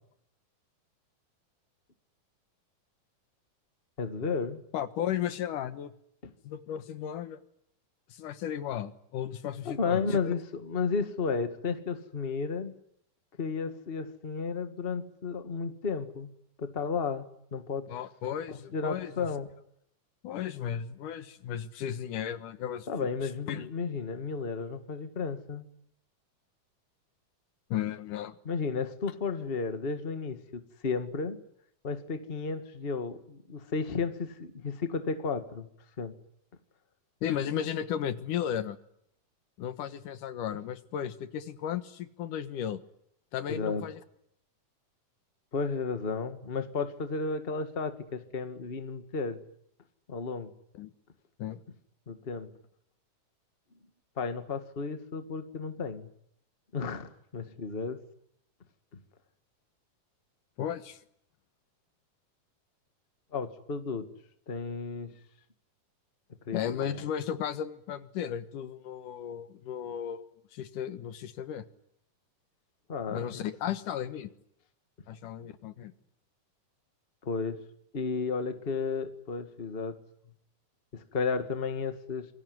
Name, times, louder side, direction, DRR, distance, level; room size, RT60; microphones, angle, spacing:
voice 1, 4.0-4.6 6.2-6.3 9.6-12.7 13.4-16.3 16.6-17.3 17.5-17.8 18.5-19.5 22.9-25.6 28.4-31.4 31.8-35.7 36.0-36.1 43.5-43.8 45.5-49.4 50.1-50.5 52.1-52.5 54.2-56.1 56.7-58.0 63.3-64.1 64.5-65.1 66.4-67.0 72.9-73.2 77.2-77.6 77.9-80.0 80.9-82.3, left 5 dB, 25° left, 9 dB, 1.6 m, -33 dB
voice 2, 4.7-5.9 6.4-7.4 8.1-10.2 17.9-19.3 20.2-23.1 23.5-23.7 27.7-28.4 37.2-38.8 39.6-42.8 43.3-44.0 50.7-50.9 51.4-51.6 60.6-61.0 66.5-70.3 70.5-71.6 73.1-74.3 75.1-75.9, left 9 dB, 80° left, 12 dB, 2.9 m, -35 dB
27.0 x 23.5 x 9.6 m, 0.73 s
omnidirectional pair, 3.7 m